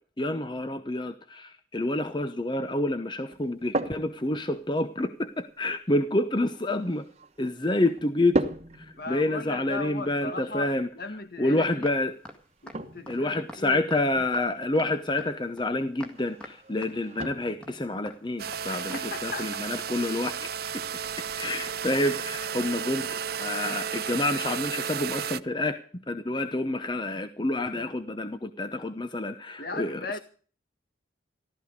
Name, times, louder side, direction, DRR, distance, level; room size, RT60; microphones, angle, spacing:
voice 1, 0.2-7.1 7.4-8.4 8.8-10.9 11.4-12.1 13.1-20.5 21.4-30.2, left 1 dB, 25° left, 0.8 m, -28 dB
sound 1, 3.3-21.4, right 1 dB, 35° right, 1.2 m, -39 dB
voice 2, 9.0-11.9 12.6-13.8 18.7-19.7 29.6-30.2, left 3 dB, 50° left, 1.5 m, -37 dB
sound 2, 11.8-12.0 12.2-12.4 12.7-12.8 13.1-13.2 13.5-13.6 13.9-14.0 14.3-14.4 14.8-14.9 15.2-15.3 15.6-15.7 16.0-16.1 16.4-16.5 16.8-16.9 17.2-17.3 17.6-17.7 18.1-18.2 18.5-18.6 18.9-19.0 19.3-19.4, left 1 dB, 5° left, 1.9 m, -43 dB
sound 3, 18.4-25.4, right 7 dB, 50° right, 0.5 m, -33 dB
14.5 x 13.0 x 5.1 m
head